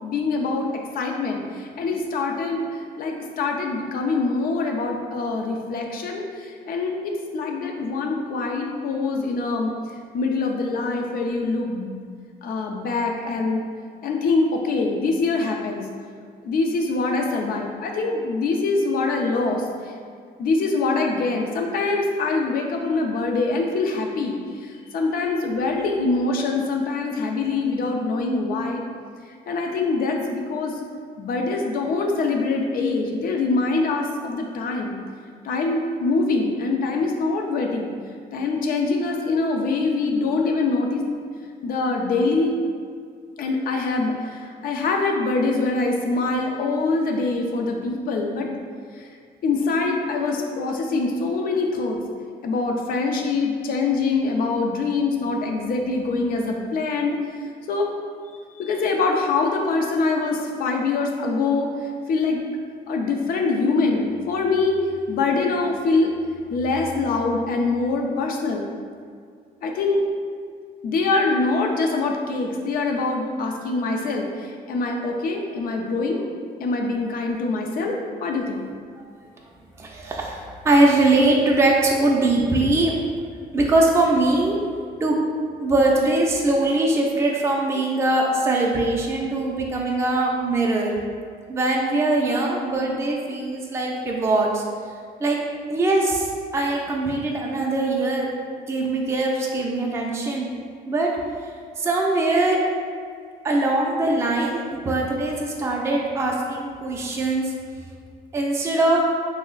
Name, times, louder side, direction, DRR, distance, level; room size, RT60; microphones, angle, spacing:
voice 1, 0.0-0.7 0.9-9.7 10.1-12.0 12.4-13.6 14.0-15.8 16.4-19.6 20.4-28.8 29.5-30.8 31.2-35.0 35.4-37.9 38.3-41.1 41.6-42.6 43.4-48.5 49.0-49.1 49.4-52.0 52.4-57.2 57.7-57.9 58.6-61.7 62.1-62.4 62.9-64.8 65.1-66.1 66.5-68.7 69.6-70.0 70.8-76.2 76.6-78.6, left 3 dB, 65° left, 2 dB, 0.5 m, -24 dB
voice 2, 79.8-82.9 83.5-84.6 85.0-85.2 85.6-91.0 91.5-94.6 95.2-95.4 95.7-96.3 96.5-98.3 98.7-100.5 100.9-101.1 101.8-102.6 103.4-107.5 108.3-109.0, right 2 dB, 15° right, -1 dB, 0.4 m, -21 dB
3.2 x 2.1 x 3.7 m, 2.1 s
cardioid pair, 115°, 17 cm